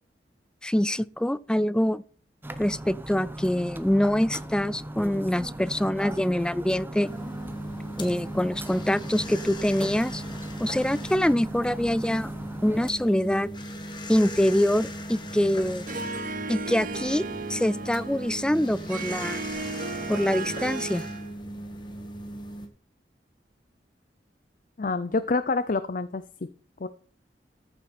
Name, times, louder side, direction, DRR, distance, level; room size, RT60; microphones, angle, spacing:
voice 1, 0.6-2.0 2.6-7.1 8.0-10.2 10.6-12.3 12.6-13.5 14.1-15.9 16.5-17.2 17.5-19.5 20.1-21.0, left 1 dB, 5° left, 0.4 m, -25 dB
sound 1, 2.4-12.9, right 1 dB, 10° right, 0.9 m, -38 dB
sound 2, 7.0-22.7, equal, 25° left, 2.0 m, -38 dB
Harp, 15.9-21.3, right 3 dB, 50° right, 1.1 m, -35 dB
voice 2, 24.8-26.5 26.8-26.9, left 3 dB, 50° left, 0.6 m, -27 dB
14.0 x 7.4 x 4.3 m
head